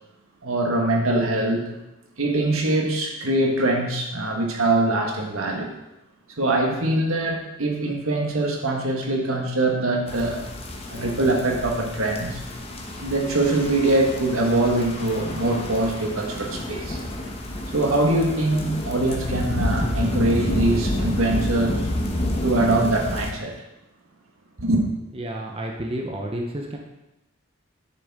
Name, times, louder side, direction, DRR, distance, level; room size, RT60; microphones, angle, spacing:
voice 1, 0.4-1.7 2.2-5.7 6.4-10.4 10.9-12.4 13.0-17.0 17.7-21.9 22.4-23.5 24.6-24.8, right 2 dB, 80° right, 1 dB, 1.7 m, -23 dB
sound 1, 10.1-23.3, left 1 dB, 30° left, 1.0 m, -29 dB
voice 2, 25.1-26.8, right 1 dB, 25° right, 1 dB, 0.8 m, -30 dB
9.9 x 6.9 x 3.7 m, 0.95 s
head